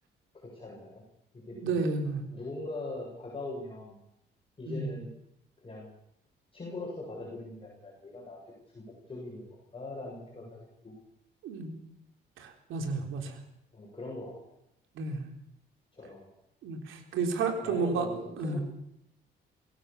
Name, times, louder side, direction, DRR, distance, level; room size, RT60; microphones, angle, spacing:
voice 1, 0.3-1.0 1.3-1.8 2.3-4.0 4.6-5.1 5.6-5.9 6.5-8.4 8.7-10.6 10.8-10.9 13.7-14.4 15.9-16.3 17.6-18.6, left 2 dB, 25° left, -3 dB, 7.9 m, -41 dB
voice 2, 1.5-2.2 4.7-4.9 11.4-11.8 12.4-13.3 15.0-15.3 16.6-18.1 18.4-18.6, right 4 dB, 85° right, 4 dB, 4.0 m, -31 dB
24.0 x 16.0 x 7.2 m, 0.78 s
cardioid pair, 90°, 20 cm